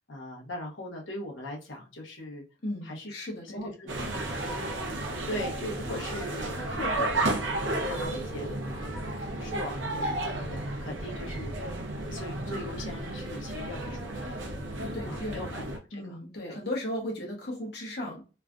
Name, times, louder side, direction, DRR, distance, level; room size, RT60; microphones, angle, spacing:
voice 1, 0.1-2.4 2.8-3.1 3.5-7.6 7.8-8.9 9.3-11.5 11.9-14.4 15.1-16.0 16.4-16.6, left 1 dB, 85° left, -1 dB, 0.9 m, -40 dB
voice 2, 2.6-3.7 14.7-15.5 15.9-18.2, left 1 dB, 60° left, -1 dB, 1.0 m, -36 dB
sound 1, 3.9-15.8, right 2 dB, 85° right, 0.7 m, -33 dB
3.2 x 2.3 x 2.4 m, 0.34 s
head